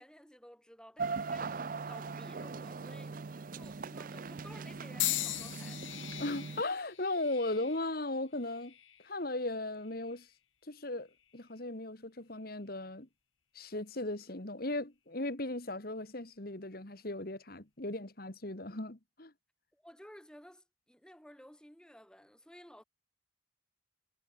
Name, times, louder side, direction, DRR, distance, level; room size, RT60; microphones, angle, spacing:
voice 1, 0.0-5.9 19.7-22.8, equal, 5° left, 4.7 m, -55 dB
sound 1, 1.0-6.6, right 4 dB, 45° right, 0.5 m, -40 dB
sound 2, 5.0-9.1 9.8-10.3 11.2-11.4, left 14 dB, 80° left, 4.2 m, -39 dB
voice 2, 6.1-8.7 9.0-10.3 10.7-11.1 11.3-13.1 13.6-19.3, left 2 dB, 50° left, 2.0 m, -37 dB
head